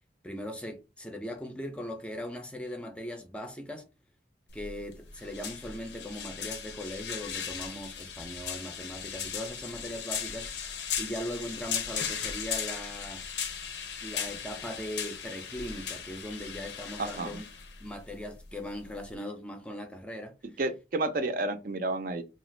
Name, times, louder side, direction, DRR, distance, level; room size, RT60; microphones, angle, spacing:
voice 1, 0.2-3.9 4.5-10.5 11.0-13.2 14.0-17.4 17.8-20.3, equal, 5° left, 0.4 m, -39 dB
sound 1, 4.5-19.1, left 7 dB, 75° left, 0.6 m, -37 dB
voice 2, 17.0-17.4 20.6-22.2, right 2 dB, 50° right, 0.4 m, -31 dB
2.8 x 2.4 x 3.1 m
head